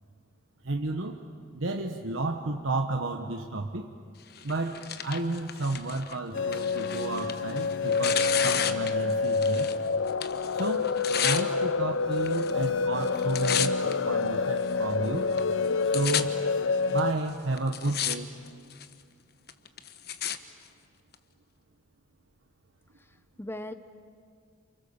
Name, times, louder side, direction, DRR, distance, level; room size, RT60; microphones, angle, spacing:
voice 1, 0.6-1.2 1.5-3.9 4.4-9.7 10.5-15.3 15.8-16.4 16.9-18.3, right 2 dB, 80° right, 4 dB, 1.2 m, -32 dB
Tearing, 4.4-9.8 10.1-11.4 12.2-12.7 13.0-13.9 14.6-14.7 15.4-15.5 15.7-16.2 17.0-17.1 17.6-18.2 18.5-18.9 19.5-20.4 21.1-21.2, left 9 dB, 50° left, 1.1 m, -32 dB
sound 1, 6.3-17.1, left 4 dB, 80° left, 0.7 m, -28 dB
voice 2, 23.0-23.7, left 1 dB, 10° left, 9 dB, 0.7 m, -40 dB
29.5 x 28.0 x 7.2 m, 2.2 s
head